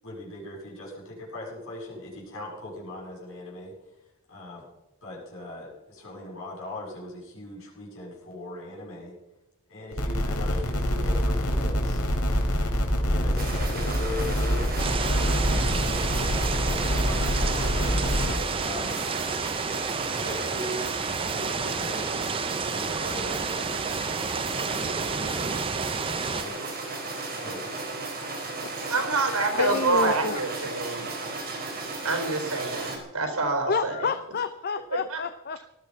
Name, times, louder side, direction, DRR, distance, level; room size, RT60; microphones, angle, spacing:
voice 1, 0.0-3.7 4.3-4.7 5.0-9.1 9.7-12.0 13.0-15.3 15.6-19.0 20.1-20.9 21.3-23.4 24.5-25.6 26.3-26.9 27.4-27.7, left 1 dB, 60° left, -3 dB, 7.9 m, -39 dB
sound 1, 9.9-18.3, equal, 80° left, 3.7 m, -26 dB
sound 2, 13.4-33.0, right 3 dB, 45° right, 4.4 m, -35 dB
sound 3, 14.8-26.4, right 5 dB, 25° right, 0.5 m, -31 dB
voice 2, 28.9-31.1 32.0-34.1 34.9-35.2, right 3 dB, 90° right, 5 dB, 4.4 m, -27 dB
voice 3, 29.5-30.4 33.7-35.6, left 5 dB, 45° left, 11 dB, 0.6 m, -29 dB
18.5 x 13.0 x 5.6 m, 0.96 s
head